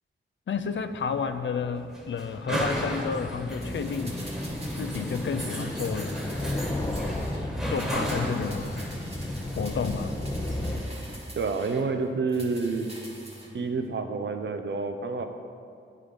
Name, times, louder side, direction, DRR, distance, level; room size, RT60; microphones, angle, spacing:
voice 1, 0.5-4.2 4.8-6.2 7.6-8.8 9.6-10.2, left 6 dB, 65° left, 8 dB, 0.4 m, -31 dB
sound 1, 0.5-11.2, equal, 5° right, 1.3 m, -34 dB
sound 2, 3.6-7.4 7.7-11.9 12.3-13.5 13.8-13.9, right 1 dB, 30° right, 1.3 m, -45 dB
sound 3, 3.8-10.8, left 1 dB, 20° left, 0.7 m, -34 dB
voice 2, 11.4-12.9 13.5-15.2, right 4 dB, 60° right, 6 dB, 0.6 m, -28 dB
9.5 x 3.7 x 5.0 m, 2.4 s
wide cardioid pair, 95°, 21 cm